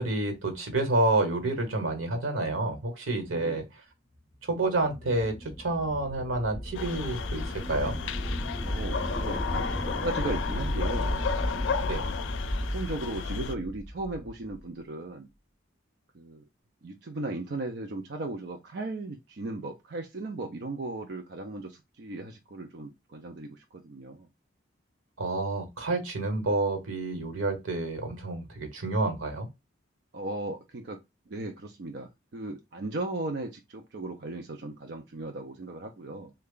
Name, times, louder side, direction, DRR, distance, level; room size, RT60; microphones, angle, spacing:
voice 1, 0.0-3.6 4.5-8.0 11.8-12.0 25.2-29.5, right 2 dB, 90° right, 1.1 m, -29 dB
voice 2, 3.3-3.7 8.7-11.1 12.1-12.3 12.6-15.3 16.1-16.4 16.8-24.3 30.1-31.0 31.3-36.3, right 2 dB, 55° right, 0.5 m, -37 dB
sound 1, 4.6-14.6, equal, ahead, 0.5 m, -34 dB
sound 2, 6.7-13.5, left 6 dB, 70° left, 0.3 m, -34 dB
3.3 x 2.3 x 3.7 m
head